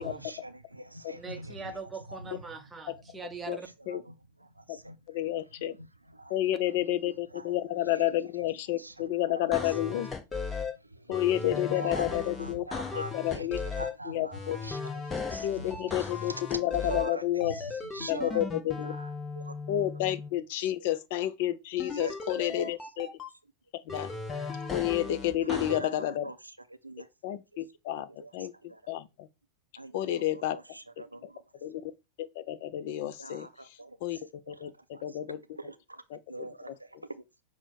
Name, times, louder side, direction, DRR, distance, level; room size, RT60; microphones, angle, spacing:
voice 1, 0.0-1.8 2.1-2.3 3.5-3.6 3.9-4.1 4.4-5.0 5.8-6.4 7.3-7.5 7.8-8.1 8.8-9.7 10.6-11.2 11.7-16.4 16.8-18.4 18.8-19.1 19.4-19.5 20.6-20.7 21.9-22.8 25.5-26.4 26.8-27.4 27.9-28.3 28.6-28.8 29.8-31.4 33.2-34.2 34.5-35.2 35.6-36.0 36.3-37.2, right 2 dB, 85° right, 0.4 m, -43 dB
voice 2, 1.1-3.7, right 4 dB, 15° right, 0.7 m, -42 dB
voice 3, 5.1-5.8 6.3-10.1 11.1-12.7 13.0-13.6 14.1-14.6 15.3-17.5 18.1-18.9 19.7-23.1 23.9-24.1 24.7-26.3 27.2-28.5 28.9-29.3 29.9-30.6 31.6-31.9 32.2-34.2 34.5-35.4 36.1-36.2, left 13 dB, 50° left, 0.4 m, -30 dB
sound 1, 9.5-10.7 11.1-13.9 14.3-17.1 17.4-20.3 21.8-23.3 23.9-25.8, left 4 dB, 15° left, 0.8 m, -36 dB
5.9 x 2.1 x 4.1 m
figure-of-eight pair, 90°, 0 cm